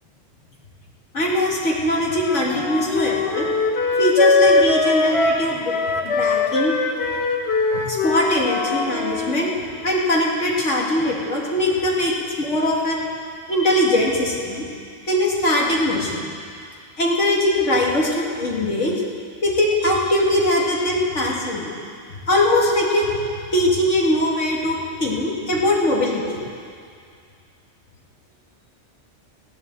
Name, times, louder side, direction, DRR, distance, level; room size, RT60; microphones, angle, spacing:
voice 1, 1.1-3.5 4.0-5.8 6.0-6.7 7.7-9.5 9.8-13.0 13.5-14.7 15.1-16.2 17.0-19.0 19.4-21.7 22.2-23.2 23.5-26.4, left 1 dB, 75° left, -3 dB, 2.6 m, -21 dB
Wind instrument woodwind instrument, 2.1-9.4, left 3 dB, 60° left, 1.3 m, -21 dB
15.0 x 10.5 x 7.6 m, 2.2 s
omnidirectional pair, 1.2 m